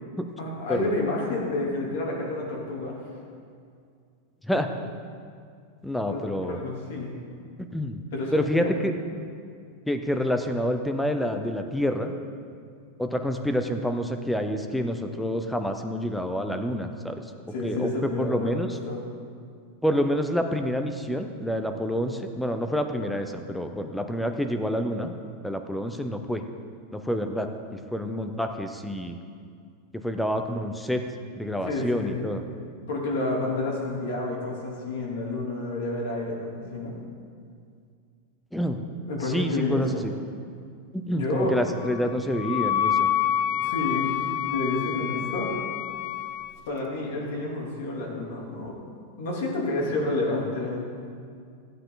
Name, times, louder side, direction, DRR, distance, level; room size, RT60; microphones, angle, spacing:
voice 1, 0.4-3.0 6.0-7.1 8.1-8.8 17.5-18.5 18.9-19.0 31.6-32.2 32.9-36.9 39.1-40.0 41.1-41.5 43.5-45.6 46.6-48.7 49.2-50.9, left 2 dB, 70° left, -2 dB, 3.0 m, -29 dB
voice 2, 5.8-6.6 7.7-8.0 8.3-8.9 9.9-12.1 13.0-17.2 17.6-18.7 19.8-25.1 25.4-26.4 26.9-29.2 29.9-31.0 31.3-32.4 38.5-38.8 39.3-40.1 40.9-43.1, equal, 5° left, 6 dB, 0.6 m, -28 dB
Wind instrument woodwind instrument, 41.8-46.6, left 10 dB, 45° left, 0.5 m, -28 dB
15.5 x 9.2 x 3.9 m, 2.2 s
supercardioid pair, 160°, 0 cm